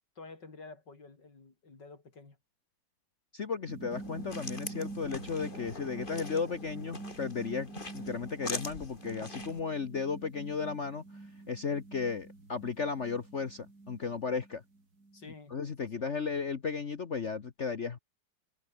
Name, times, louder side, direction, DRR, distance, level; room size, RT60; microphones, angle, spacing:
voice 1, 0.2-2.4 15.1-15.6 16.0-16.1, left 3 dB, 70° left, 4.7 m, -50 dB
voice 2, 3.3-11.0 11.5-14.6 15.5-18.0, left 5 dB, 45° left, 1.4 m, -35 dB
sound 1, 3.7-15.3, right 2 dB, 55° right, 5.6 m, -46 dB
sound 2, 3.9-9.6, left 3 dB, 25° left, 2.6 m, -44 dB
omnidirectional pair, 2.0 m